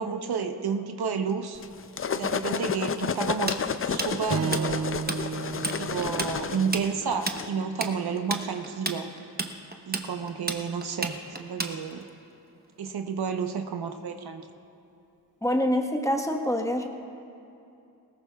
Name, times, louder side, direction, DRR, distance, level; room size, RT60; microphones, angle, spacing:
voice 1, 0.0-1.6 2.1-3.5 3.8-4.8 5.8-9.1 9.9-12.0 12.8-14.4, right 6 dB, 65° right, 6 dB, 0.9 m, -31 dB
sound 1, 1.6-7.5, left 6 dB, 35° left, 0.5 m, -31 dB
Tools, 3.5-5.2 5.5-5.8 6.0-12.1, right 3 dB, 25° right, 1.0 m, -31 dB
Strum, 4.3-8.6, right 6 dB, 40° right, 0.4 m, -34 dB
voice 2, 15.4-16.9, equal, 10° left, 3 dB, 1.3 m, -25 dB
20.5 x 18.0 x 2.4 m, 2.7 s
cardioid pair, 65°, 40 cm